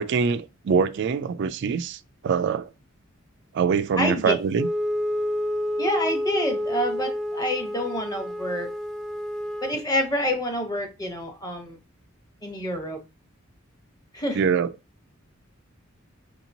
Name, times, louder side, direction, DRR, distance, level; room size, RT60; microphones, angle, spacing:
voice 1, 0.0-2.7 3.5-4.7 14.3-14.7, right 6 dB, 55° right, 0.3 m, -24 dB
voice 2, 4.0-4.4 5.8-8.7 9.6-11.8 12.4-13.0 14.1-14.4, left 1 dB, 20° left, 0.9 m, -27 dB
Wind instrument woodwind instrument, 4.5-9.8, left 1 dB, ahead, 0.5 m, -29 dB
6.4 x 2.9 x 2.6 m
head